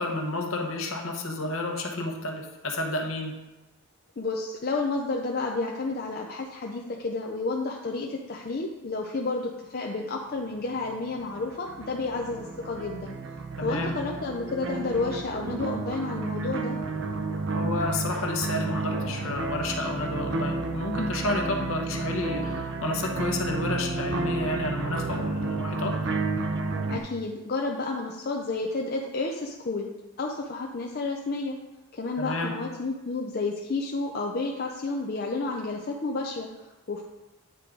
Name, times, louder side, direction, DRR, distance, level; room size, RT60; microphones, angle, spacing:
voice 1, 0.0-3.4 13.6-13.9 17.5-26.0 32.2-32.5, left 2 dB, 65° left, 2 dB, 1.0 m, -30 dB
voice 2, 4.2-13.2 13.6-16.8 26.9-29.9 30.2-31.6 31.9-37.0, left 3 dB, 45° left, 0 dB, 0.5 m, -31 dB
sound 1, 10.6-27.0, right 3 dB, 55° right, 0.6 m, -31 dB
9.0 x 3.8 x 4.6 m, 1.1 s
head